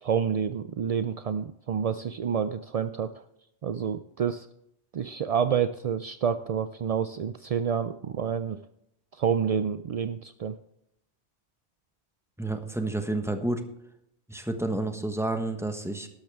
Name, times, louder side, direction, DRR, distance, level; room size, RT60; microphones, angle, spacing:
voice 1, 0.0-3.1 3.6-4.5 4.9-8.6 9.1-10.6, right 7 dB, 60° right, 11 dB, 0.3 m, -28 dB
voice 2, 12.4-13.6 14.3-16.1, right 2 dB, ahead, 6 dB, 1.2 m, -30 dB
12.0 x 12.0 x 3.6 m, 0.79 s
omnidirectional pair, 1.2 m